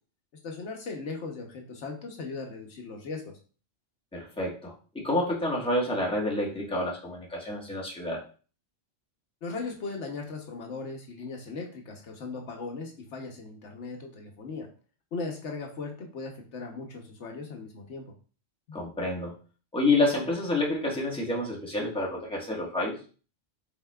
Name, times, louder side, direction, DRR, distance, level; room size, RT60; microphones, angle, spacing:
voice 1, 0.4-3.3 9.4-14.7 15.1-18.1 18.7-18.8, left 3 dB, 75° left, 2 dB, 1.1 m, -38 dB
voice 2, 4.1-8.2 18.7-19.3 19.7-23.0, left 2 dB, 5° left, -4 dB, 1.2 m, -28 dB
5.5 x 4.1 x 2.3 m, 0.38 s
omnidirectional pair, 1.2 m